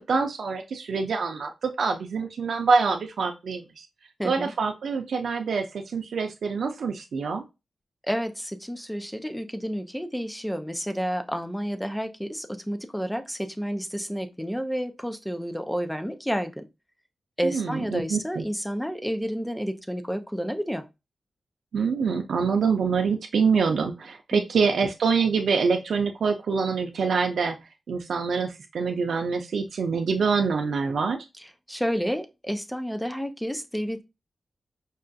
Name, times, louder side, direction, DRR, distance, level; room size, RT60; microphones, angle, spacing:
voice 1, 0.0-3.9 4.2-7.4 17.4-18.4 21.7-27.6 27.9-31.2, right 5 dB, 85° right, 0.4 m, -25 dB
voice 2, 4.2-4.5 8.1-16.6 17.4-20.8 24.3-24.4 31.7-34.0, equal, 5° left, 0.4 m, -30 dB
5.4 x 2.3 x 2.5 m
wide cardioid pair, 175°, 0 cm